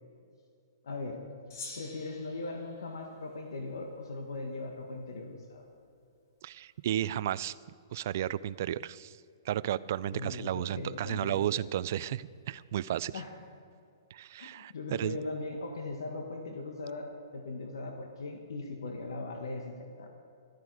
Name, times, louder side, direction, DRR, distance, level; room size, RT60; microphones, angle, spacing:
voice 1, 0.8-1.2 1.8-5.6 10.1-11.4 13.1-13.3 14.4-20.1, left 2 dB, 85° left, 4 dB, 1.5 m, -39 dB
Gong, 1.5-4.1, left 3 dB, 50° left, 1.8 m, -48 dB
voice 2, 6.4-7.6 7.9-9.2 9.5-13.1 14.1-14.7 15.0-15.2, right 11 dB, 40° right, 17 dB, 0.3 m, -33 dB
13.5 x 12.5 x 4.7 m, 2.5 s
hypercardioid pair, 175°, 2 cm